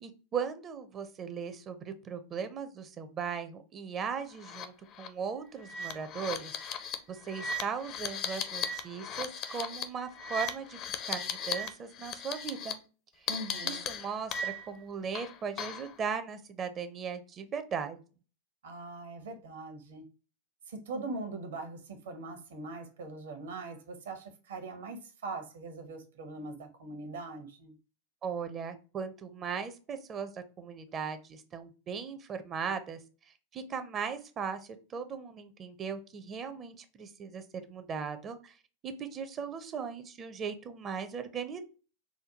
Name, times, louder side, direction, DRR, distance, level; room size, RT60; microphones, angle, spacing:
voice 1, 0.0-12.8 13.6-18.0 28.2-33.0 33.5-38.5 38.8-41.6, right 6 dB, 25° right, 0.5 m, -38 dB
sound 1, 4.4-4.7 5.0-5.1 5.6-11.7 12.0-12.7 13.3-14.8 15.1-15.9, left 4 dB, 40° left, 0.5 m, -37 dB
voice 2, 13.3-13.8 18.6-20.1 20.7-27.7, right 3 dB, 60° right, 0.9 m, -41 dB
5.0 x 2.2 x 2.8 m
figure-of-eight pair, 90°, 0 cm